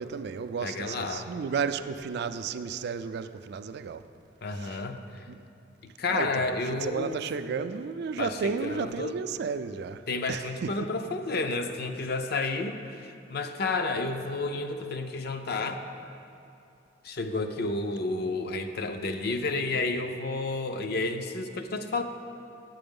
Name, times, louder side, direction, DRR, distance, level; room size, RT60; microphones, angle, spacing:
voice 1, 0.0-4.0 4.6-4.8 5.3-5.4 6.1-10.0 10.3-10.7, right 5 dB, 60° right, 0.3 m, -33 dB
voice 2, 0.6-1.3 4.4-5.2 6.0-7.3 8.2-9.2 10.1-15.8 17.0-22.0, left 3 dB, 60° left, 0.5 m, -31 dB
7.8 x 7.6 x 5.3 m
head